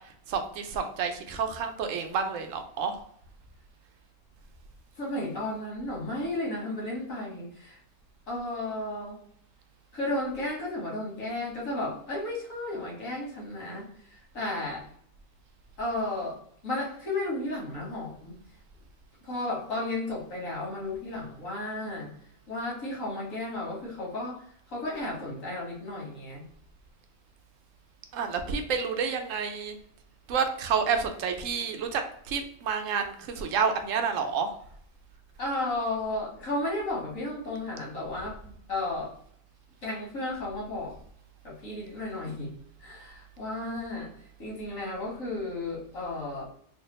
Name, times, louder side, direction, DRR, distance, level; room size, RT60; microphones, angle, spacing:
voice 1, 0.3-3.0 28.1-29.8 30.3-32.0 32.3-34.5, right 6 dB, 75° right, 6 dB, 0.9 m, -29 dB
voice 2, 5.0-7.8 8.3-9.2 9.9-14.9 15.8-16.4 16.6-18.4 19.2-22.1 22.5-26.4 35.4-38.4 38.7-39.1 39.8-41.0 41.4-42.5 42.8-44.1 44.4-46.4, left 2 dB, 85° left, -4 dB, 1.7 m, -33 dB
3.4 x 2.3 x 3.0 m, 0.64 s
omnidirectional pair, 1.4 m